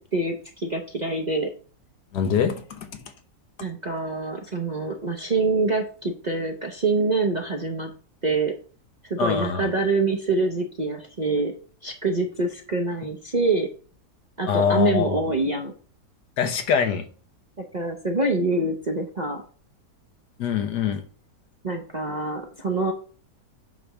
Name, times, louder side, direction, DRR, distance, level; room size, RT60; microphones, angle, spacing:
voice 1, 0.0-1.5 3.6-7.9 8.2-8.5 9.0-11.5 11.8-13.7 14.4-15.7 17.7-19.4 21.6-22.9, right 3 dB, 35° right, 2 dB, 0.7 m, -25 dB
voice 2, 2.1-3.0 9.2-9.7 14.5-15.2 16.4-17.1 20.4-21.0, left 7 dB, 75° left, 7 dB, 1.6 m, -24 dB
8.4 x 3.4 x 6.0 m, 0.40 s
omnidirectional pair, 1.8 m